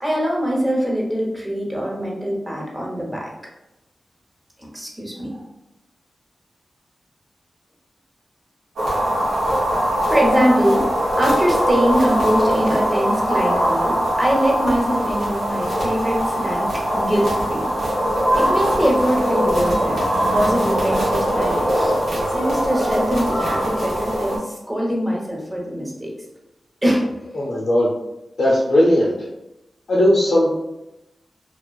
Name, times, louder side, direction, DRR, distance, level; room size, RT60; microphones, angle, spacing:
voice 1, 0.0-3.3 4.7-5.4 9.6-17.7 18.3-20.0 20.3-22.0 22.3-26.1 26.8-27.1, equal, 20° right, -2 dB, 0.9 m, -22 dB
sound 1, 8.8-24.4, equal, 90° right, 0.9 m, -21 dB
voice 2, 27.4-27.9 28.4-29.1 29.9-30.5, left 1 dB, 75° left, -7 dB, 0.6 m, -17 dB
2.4 x 2.2 x 2.3 m, 0.93 s
cardioid pair, 45°, 0 cm